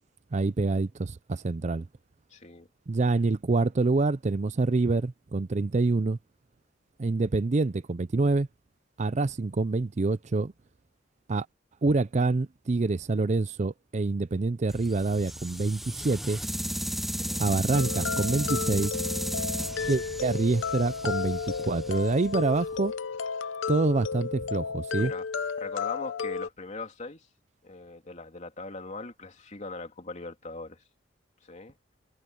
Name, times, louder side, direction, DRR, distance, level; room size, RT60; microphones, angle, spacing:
voice 1, 0.3-1.9 2.9-6.2 7.0-8.5 9.0-10.5 11.3-11.5 11.8-16.4 17.4-19.0 19.9-22.9 23.7-25.1, right 3 dB, 40° right, 0.5 m, -26 dB
voice 2, 2.3-2.7 17.2-17.4 24.9-25.3 25.6-27.3 27.6-30.8 31.4-31.7, left 3 dB, 40° left, 3.2 m, -40 dB
sound 1, 14.7-22.8, equal, ahead, 0.8 m, -35 dB
sound 2, 17.7-26.5, left 5 dB, 85° left, 0.7 m, -33 dB
head